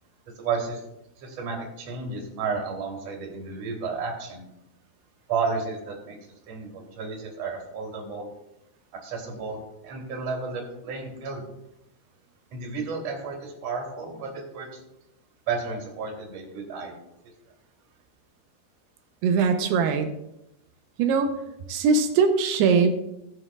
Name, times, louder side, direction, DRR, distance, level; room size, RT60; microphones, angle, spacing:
voice 1, 0.4-0.8 1.2-4.4 5.3-6.2 6.5-8.3 9.0-11.5 12.5-14.7 15.5-16.9, right 4 dB, 40° right, -1 dB, 3.6 m, -32 dB
voice 2, 19.2-20.1 21.0-21.3 21.7-22.9, right 5 dB, 80° right, 6 dB, 2.9 m, -21 dB
18.0 x 7.5 x 2.4 m, 0.84 s
omnidirectional pair, 4.8 m